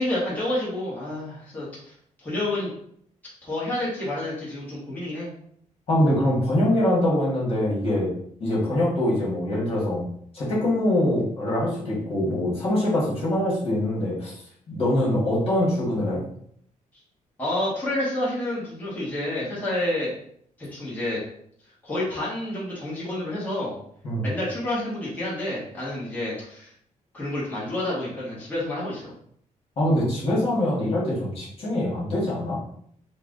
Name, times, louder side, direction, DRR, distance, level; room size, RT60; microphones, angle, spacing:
voice 1, 0.0-1.9 2.2-2.7 3.4-5.3 17.4-20.1 20.6-21.2 21.8-23.8 24.2-26.7 27.1-29.1, left 1 dB, 10° left, -9 dB, 1.5 m, -29 dB
voice 2, 5.9-8.1 8.4-10.0 10.3-14.3 14.7-16.2 24.0-24.3 29.8-32.6, left 1 dB, 45° left, -6 dB, 1.8 m, -23 dB
4.6 x 2.4 x 3.9 m, 0.66 s
wide cardioid pair, 160°, 14 cm